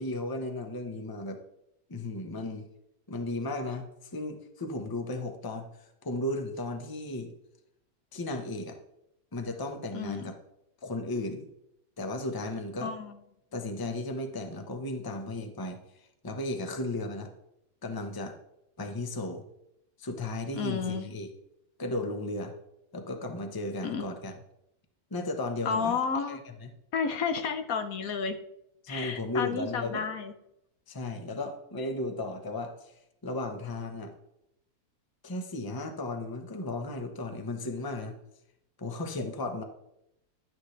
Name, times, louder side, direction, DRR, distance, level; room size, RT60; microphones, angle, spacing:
voice 1, 0.0-1.4 1.9-2.7 3.1-7.3 8.1-8.8 9.3-10.3 10.8-11.5 12.0-12.9 13.5-17.3 17.8-18.4 18.8-19.5 20.0-21.3 21.8-22.5 22.9-24.4 25.1-26.0 26.3-26.7 28.8-30.1 30.9-32.9 33.2-34.1 35.2-38.2 38.8-39.6, left 2 dB, 15° left, 5 dB, 0.8 m, -35 dB
voice 2, 9.9-10.3 12.8-13.2 20.5-21.1 23.8-24.1 25.6-26.4 26.9-28.4 28.9-30.3, left 6 dB, 70° left, 7 dB, 1.3 m, -31 dB
12.0 x 9.3 x 3.3 m, 0.81 s
omnidirectional pair, 1.6 m